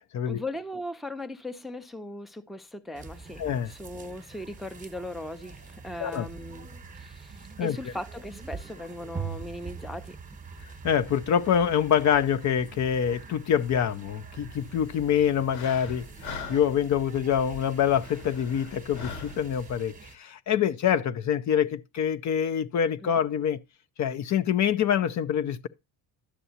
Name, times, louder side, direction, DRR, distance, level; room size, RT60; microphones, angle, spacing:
voice 1, 0.3-6.7 6.9-10.2 23.0-23.2, left 1 dB, ahead, 0.6 m, -38 dB
sound 1, 2.9-20.2, right 5 dB, 20° right, 1.1 m, -44 dB
voice 2, 3.4-3.7 6.0-6.3 7.6-7.8 10.8-23.6 24.0-25.7, left 8 dB, 45° left, 0.6 m, -25 dB
sound 2, 14.5-19.8, left 5 dB, 85° left, 2.3 m, -43 dB
11.0 x 6.8 x 2.8 m
cardioid pair, 110°, 42 cm